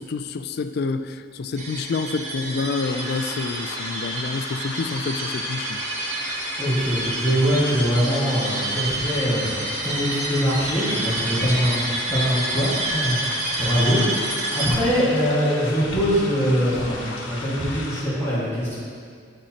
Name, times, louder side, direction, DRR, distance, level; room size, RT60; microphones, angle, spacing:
voice 1, 0.0-5.8 14.0-14.1, left 4 dB, 60° left, 10 dB, 0.3 m, -28 dB
sound 1, 1.6-14.8, right 2 dB, 40° right, 1.0 m, -29 dB
sound 2, 2.8-18.0, left 2 dB, 90° left, 1.0 m, -36 dB
voice 2, 6.2-14.2 14.5-18.7, equal, 15° left, -11 dB, 1.7 m, -23 dB
11.5 x 4.3 x 2.9 m, 2.1 s
head